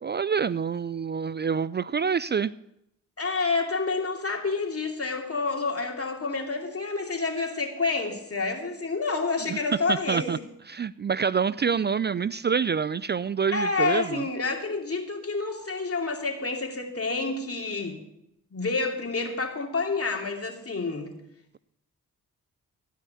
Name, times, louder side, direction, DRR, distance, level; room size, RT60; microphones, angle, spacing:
voice 1, 0.0-2.5 9.5-9.6 9.9-10.4 10.7-14.2, right 6 dB, 30° right, 19 dB, 0.4 m, -27 dB
voice 2, 3.2-10.3 13.5-18.0 18.5-21.1, left 3 dB, 35° left, 2 dB, 2.7 m, -28 dB
16.0 x 5.6 x 8.3 m, 0.82 s
supercardioid pair, 45°, 38 cm